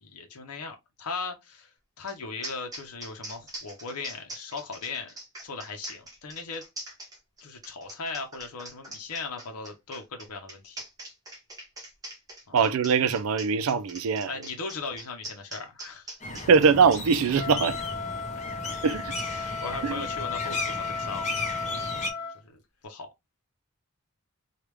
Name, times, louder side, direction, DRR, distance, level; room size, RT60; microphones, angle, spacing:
voice 1, 0.0-5.1 5.4-6.6 7.4-10.8 12.5-12.6 14.3-16.1 18.6-18.7 19.3-22.1 22.4-23.1, left 4 dB, 85° left, 0.7 m, -38 dB
sound 1, 2.1-2.2 2.4-17.0, right 1 dB, 15° right, 0.8 m, -42 dB
voice 2, 12.5-14.3 16.5-17.8 18.8-19.1 19.8-19.9, right 5 dB, 70° right, 0.4 m, -22 dB
sound 2, 16.2-22.1, left 2 dB, 30° left, 0.9 m, -35 dB
Wind instrument woodwind instrument, 17.3-22.4, left 5 dB, 70° left, 1.0 m, -35 dB
3.4 x 2.3 x 3.1 m
head